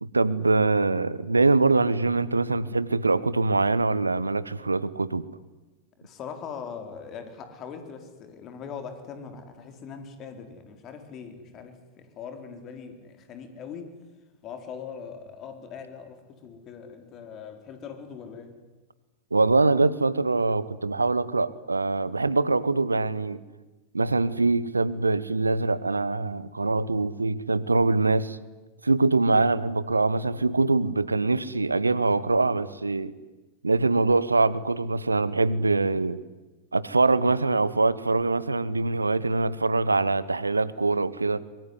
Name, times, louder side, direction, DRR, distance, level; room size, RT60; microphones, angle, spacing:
voice 1, 0.0-5.3 19.3-23.4 23.9-28.4 28.8-33.1 33.6-36.2 36.7-41.4, right 3 dB, 80° right, 19 dB, 0.9 m, -23 dB
voice 2, 6.0-13.9 14.4-18.5, left 6 dB, 35° left, 7 dB, 4.2 m, -41 dB
23.0 x 22.5 x 9.8 m, 1.1 s
figure-of-eight pair, 90°, 0 cm